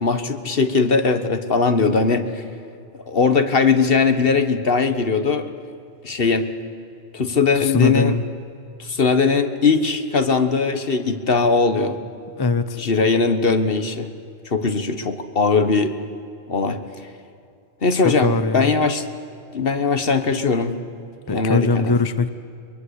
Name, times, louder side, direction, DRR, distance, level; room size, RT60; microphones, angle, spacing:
voice 1, 0.0-2.4 3.1-5.5 6.0-6.4 7.1-8.1 8.8-12.0 12.7-14.1 14.5-15.9 16.5-16.8 17.8-19.0 19.5-20.8 21.3-21.9, left 4 dB, 60° left, 9 dB, 1.6 m, -20 dB
voice 2, 7.5-8.2 12.4-12.8 17.9-18.7 21.3-22.3, left 3 dB, 25° left, 11 dB, 0.8 m, -21 dB
23.0 x 23.0 x 8.2 m, 2.5 s
omnidirectional pair, 1.1 m